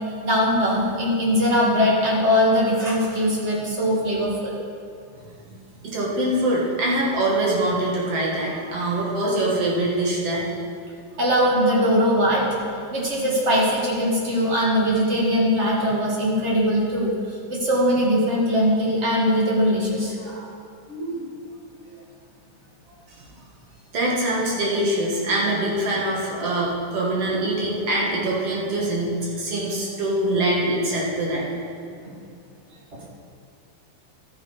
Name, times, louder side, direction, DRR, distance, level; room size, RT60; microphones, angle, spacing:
voice 1, 0.2-4.5 11.2-12.6 12.9-17.1 17.5-20.4 20.9-21.2 32.0-32.1 32.9-33.0, equal, 25° right, -5 dB, 1.7 m, -21 dB
voice 2, 5.8-10.5 23.1-23.2 23.9-31.5, right 1 dB, 55° right, -4 dB, 2.5 m, -24 dB
13.0 x 7.3 x 4.9 m, 2.4 s
omnidirectional pair, 3.4 m